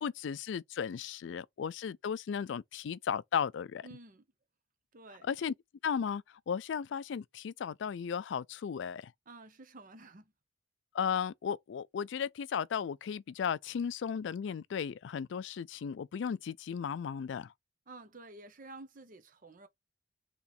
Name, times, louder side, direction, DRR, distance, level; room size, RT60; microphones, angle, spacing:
voice 1, 0.0-3.8 5.2-5.5 5.8-9.1 10.9-17.5, left 7 dB, 70° left, 0.3 m, -35 dB
voice 2, 3.8-4.2 4.9-5.3 9.3-10.3 17.9-19.7, right 2 dB, 45° right, 0.8 m, -51 dB
4.2 x 3.1 x 4.0 m
head